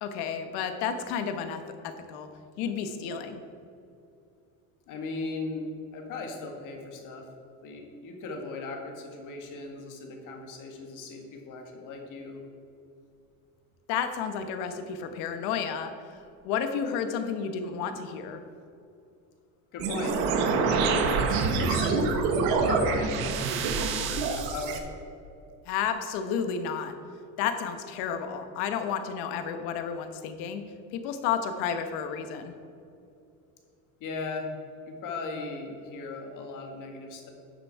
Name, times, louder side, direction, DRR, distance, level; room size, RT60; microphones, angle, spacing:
voice 1, 0.0-2.3 2.6-3.4 13.9-15.9 16.4-18.4 25.7-26.9 27.4-30.6 30.9-32.5, left 7 dB, 80° left, 8 dB, 1.1 m, -31 dB
voice 2, 4.9-5.7 5.9-7.3 7.6-12.4 19.7-20.2 20.6-22.0 22.5-24.8 34.0-34.5 34.9-37.3, left 3 dB, 55° left, 3 dB, 1.8 m, -37 dB
sound 1, 19.8-24.8, right 4 dB, 85° right, 1.3 m, -26 dB
10.5 x 7.0 x 4.6 m, 2.6 s
cardioid pair, 145°, 36 cm